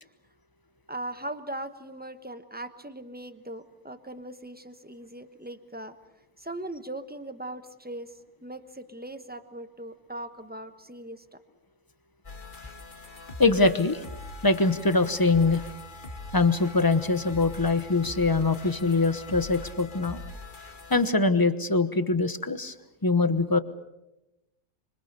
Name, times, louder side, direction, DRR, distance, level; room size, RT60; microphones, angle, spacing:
voice 1, 0.9-5.9 6.4-8.1 8.4-11.4, right 1 dB, 5° right, 10 dB, 1.0 m, -39 dB
sound 1, 12.2-21.1, left 2 dB, 30° left, 1.9 m, -42 dB
voice 2, 13.4-14.0 14.4-15.6 16.3-20.2 20.9-22.7 23.0-23.6, left 3 dB, 15° left, 12 dB, 0.9 m, -23 dB
26.0 x 25.5 x 6.8 m, 0.94 s
omnidirectional pair, 1.6 m